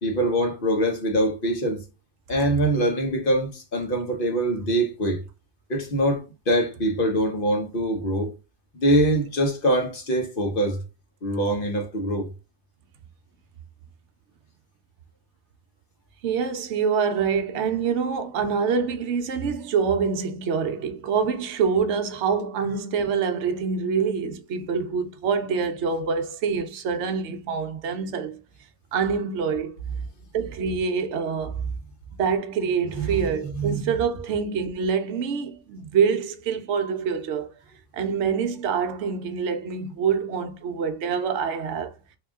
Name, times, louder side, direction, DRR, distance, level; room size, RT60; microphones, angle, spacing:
voice 1, 0.0-1.8 2.3-5.2 5.7-8.3 8.7-10.8 11.2-12.3 32.9-33.9, right 1 dB, 45° left, 1.1 m, -24 dB
voice 2, 16.2-28.4 28.9-29.8 30.3-31.5 32.2-37.5 37.9-41.9, right 6 dB, 60° right, 0.9 m, -25 dB
3.6 x 2.9 x 3.5 m
omnidirectional pair, 1.4 m